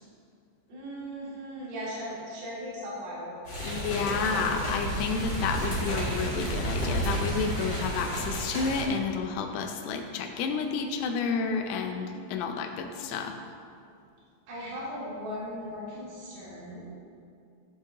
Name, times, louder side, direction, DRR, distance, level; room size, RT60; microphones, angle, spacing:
voice 1, 0.7-3.6 14.5-17.2, equal, 60° right, -9 dB, 4.1 m, -38 dB
sound 1, 3.4-8.8, right 1 dB, 35° left, 1.9 m, -31 dB
voice 2, 3.6-13.4, left 5 dB, 85° left, 5 dB, 2.9 m, -30 dB
14.0 x 5.1 x 3.8 m, 2.4 s
omnidirectional pair, 4.8 m